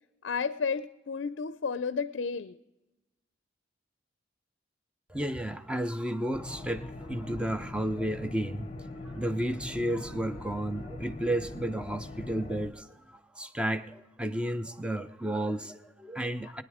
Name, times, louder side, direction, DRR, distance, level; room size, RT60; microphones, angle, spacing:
voice 1, 0.2-2.6, left 5 dB, 65° left, 0.5 m, -32 dB
voice 2, 5.1-8.7 9.0-16.6, right 1 dB, 5° right, 0.5 m, -32 dB
sound 1, 6.3-12.7, left 2 dB, 30° left, 0.8 m, -42 dB
21.0 x 10.0 x 4.9 m
head